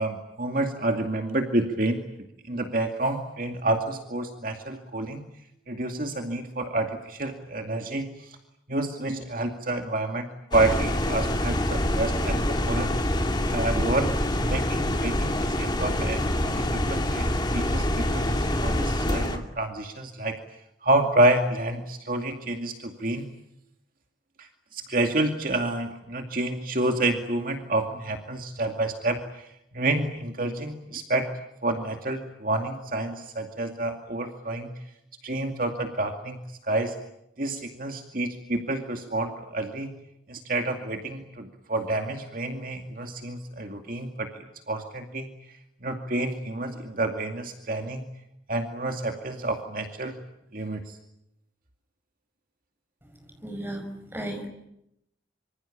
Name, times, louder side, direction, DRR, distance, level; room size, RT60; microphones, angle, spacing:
voice 1, 0.0-2.0 2.4-5.2 5.7-8.4 8.7-13.0 13.5-14.1 14.4-20.4 20.8-23.2 24.4-29.5 29.7-31.3 31.6-34.7 35.2-36.4 36.7-36.9 37.4-39.9 40.3-45.3 45.8-48.0 48.5-50.2 50.5-51.0, right 2 dB, 45° right, 4 dB, 2.4 m, -29 dB
sound 1, 10.5-19.4, left 1 dB, 25° left, 2.7 m, -26 dB
voice 2, 53.3-54.5, right 1 dB, 10° right, 6 dB, 5.3 m, -35 dB
26.0 x 25.5 x 8.7 m, 0.82 s
head